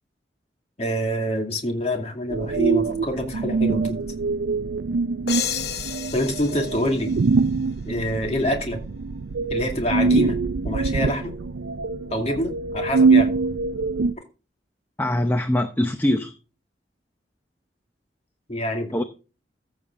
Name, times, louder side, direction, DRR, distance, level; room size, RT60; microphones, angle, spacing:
voice 1, 0.8-4.0 6.1-7.1 7.9-8.8 9.5-11.4 12.1-13.3 18.5-18.9, equal, 35° left, 3 dB, 2.4 m, -26 dB
sound 1, 2.3-14.1, right 4 dB, 85° right, 0.5 m, -24 dB
sound 2, 5.3-7.9, left 8 dB, 65° left, 1.0 m, -32 dB
voice 2, 15.0-16.3 18.9-19.0, left 1 dB, 10° left, 7 dB, 0.7 m, -22 dB
14.5 x 7.1 x 3.6 m, 0.33 s
head